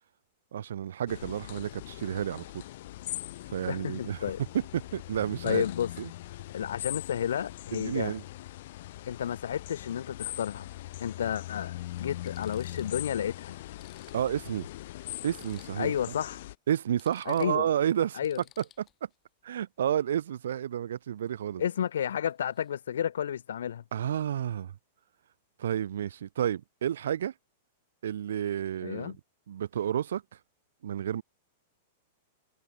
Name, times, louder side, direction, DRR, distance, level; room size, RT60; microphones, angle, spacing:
voice 1, 0.5-2.6 3.5-4.3 4.7-5.6 6.0-6.1 7.7-8.2 14.1-14.7 15.2-15.9 16.7-18.2 19.4-21.6 23.9-24.7 25.6-27.3 28.0-29.1 29.5-30.2 30.8-31.2, right 10 dB, 80° right, 0.4 m, -30 dB
sound 1, 1.1-16.5, left 15 dB, 65° left, 1.4 m, -41 dB
voice 2, 3.7-4.4 5.4-5.9 6.5-8.1 9.1-10.7 11.0-13.6 15.8-16.4 17.3-17.7 18.1-18.4 21.6-23.8 28.8-29.2, left 9 dB, 80° left, 0.3 m, -31 dB
sound 2, 12.3-13.1 13.4-13.5 13.7-16.0 16.3-16.4 16.7-19.2 21.8-22.0 22.3-22.7, left 12 dB, 30° left, 1.8 m, -59 dB
hypercardioid pair, 120°, 0 cm